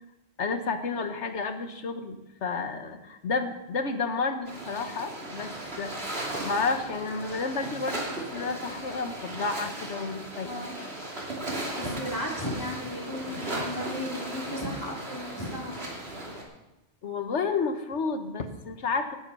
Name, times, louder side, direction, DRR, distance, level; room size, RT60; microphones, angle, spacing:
voice 1, 0.4-10.6 17.0-19.1, left 4 dB, 75° left, 7 dB, 1.5 m, -31 dB
sound 1, 4.4-16.4, right 1 dB, 60° right, 3.0 m, -37 dB
voice 2, 11.8-15.8, left 1 dB, 20° left, -2 dB, 2.7 m, -35 dB
17.5 x 8.0 x 5.5 m, 0.99 s
omnidirectional pair, 1.2 m